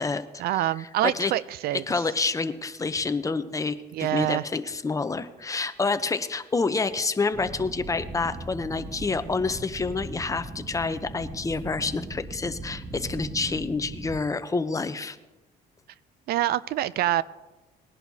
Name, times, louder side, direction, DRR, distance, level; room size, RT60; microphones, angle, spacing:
voice 1, 0.4-1.8 3.9-4.4 16.3-17.2, right 14 dB, 65° right, 19 dB, 0.4 m, -25 dB
voice 2, 1.9-15.2, left 4 dB, 20° left, 11 dB, 0.7 m, -28 dB
sound 1, 7.3-14.2, right 2 dB, 25° right, 1.2 m, -39 dB
20.0 x 11.0 x 2.8 m, 1.1 s
cardioid pair, 110°, 17 cm